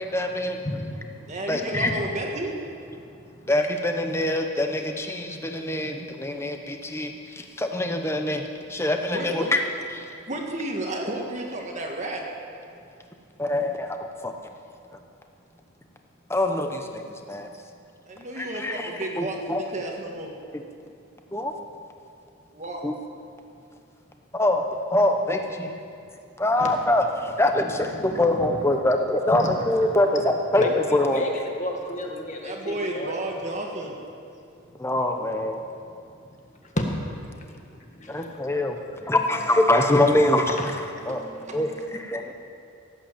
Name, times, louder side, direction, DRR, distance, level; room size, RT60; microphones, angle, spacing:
voice 1, 0.0-0.6 1.5-1.9 3.5-9.6 9.9-10.1 13.4-14.3 16.3-17.5 18.4-19.6 20.5-20.6 21.3-21.5 22.8-22.9 24.3-25.8 26.4-30.6 30.9-31.2 34.8-35.6 38.1-38.8 39.0-40.5 41.1-41.2 41.5-42.3, left 1 dB, 10° left, 4 dB, 0.9 m, -24 dB
voice 2, 0.6-1.4 1.7-2.0 3.0-3.5 26.6-26.7 27.6-28.7 29.3-33.1 36.8-36.9 37.1-39.1 40.6-40.7, left 1 dB, 35° left, 2 dB, 1.7 m, -33 dB
voice 3, 1.3-2.5 9.1-9.6 10.3-12.2 18.1-20.3 22.5-22.8 32.4-34.0 41.0-41.8, right 1 dB, 35° right, 0 dB, 1.6 m, -32 dB
17.0 x 9.0 x 7.4 m, 2.5 s
head